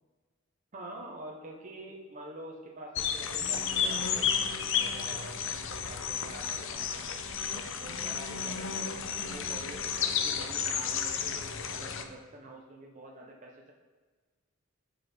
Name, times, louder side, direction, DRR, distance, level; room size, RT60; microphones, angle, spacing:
voice 1, 0.7-6.9 7.5-13.7, right 1 dB, 40° right, -1 dB, 0.9 m, -47 dB
sound 1, 3.0-12.0, left 7 dB, 65° left, 0.6 m, -32 dB
7.7 x 5.4 x 4.3 m, 1.4 s
head